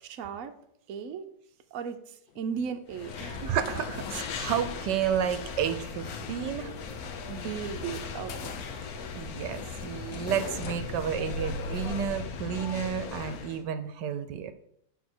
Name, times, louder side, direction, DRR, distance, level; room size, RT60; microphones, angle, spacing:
voice 1, 0.1-0.5 0.9-1.3 1.7-3.6 6.9-8.6, right 7 dB, 60° right, 6 dB, 1.0 m, -37 dB
sound 1, 2.3-2.7 3.1-4.4 5.0-6.2 7.0-7.1 7.2-7.3 10.1-12.6, left 3 dB, 80° left, 1.3 m, -41 dB
sound 2, 2.9-13.6, left 5 dB, 60° left, 1.2 m, -38 dB
voice 2, 3.5-6.7 9.2-14.5, right 9 dB, 80° right, 11 dB, 1.3 m, -31 dB
9.4 x 3.9 x 6.1 m, 0.72 s
omnidirectional pair, 1.9 m